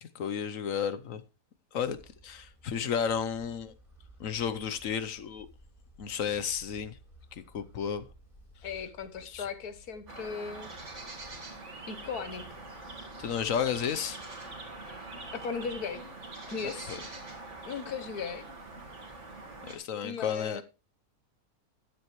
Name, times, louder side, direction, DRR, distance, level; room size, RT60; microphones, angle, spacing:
voice 1, 0.0-1.2 1.7-2.0 2.2-3.7 4.2-5.5 6.0-7.0 7.3-8.1 9.2-9.5 13.2-14.2 16.9-17.0 19.7-20.6, left 7 dB, 65° left, 1.2 m, -32 dB
sound 1, 1.8-19.8, equal, 25° left, 4.1 m, -58 dB
voice 2, 8.6-10.7 11.9-12.5 15.3-16.0 16.5-17.0 17.6-18.5 20.0-20.6, left 6 dB, 85° left, 1.6 m, -37 dB
sound 2, 10.1-19.8, right 2 dB, 50° right, 2.3 m, -44 dB
12.5 x 9.6 x 3.1 m
omnidirectional pair, 1.6 m